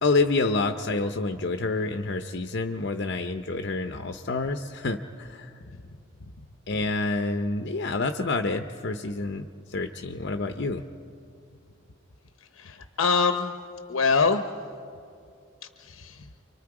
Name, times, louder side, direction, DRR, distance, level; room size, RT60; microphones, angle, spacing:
voice 1, 0.0-5.5 6.7-10.8, left 3 dB, 55° left, 7 dB, 0.7 m, -28 dB
voice 2, 12.5-13.6 13.9-14.5 15.8-16.3, left 4 dB, 85° left, 8 dB, 0.8 m, -24 dB
29.0 x 24.0 x 4.9 m, 2.5 s
head